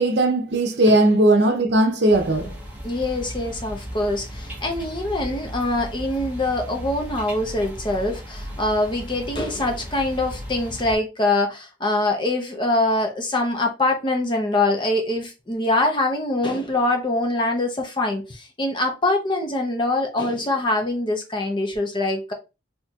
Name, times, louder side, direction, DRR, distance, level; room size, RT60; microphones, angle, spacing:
voice 1, 0.0-2.6, right 1 dB, 65° right, 0.7 m, -18 dB
sound 1, 2.1-11.0, equal, 10° right, 1.0 m, -36 dB
voice 2, 2.8-22.3, left 2 dB, 25° left, 0.7 m, -24 dB
4.1 x 2.8 x 2.3 m
head